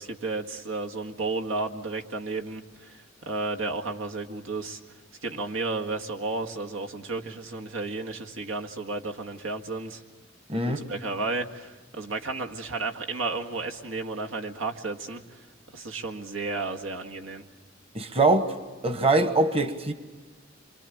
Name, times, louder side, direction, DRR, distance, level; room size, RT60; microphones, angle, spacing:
voice 1, 0.0-10.0 10.6-17.4, right 3 dB, 85° right, 1.8 m, -33 dB
voice 2, 10.5-10.8 17.9-18.5 18.8-19.9, right 2 dB, 30° right, 1.3 m, -23 dB
26.0 x 24.5 x 8.6 m
head